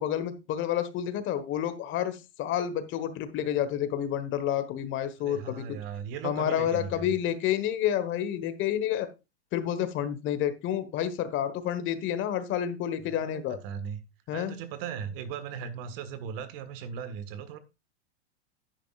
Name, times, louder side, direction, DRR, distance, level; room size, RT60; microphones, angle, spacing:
voice 1, 0.0-5.8 6.2-9.1 9.5-13.6 14.3-14.6, left 10 dB, 35° left, 1.4 m, -29 dB
voice 2, 5.2-7.1 13.1-14.0 14.3-17.6, right 7 dB, 55° right, 1.6 m, -38 dB
11.0 x 10.0 x 2.4 m
supercardioid pair, 130°, 33 cm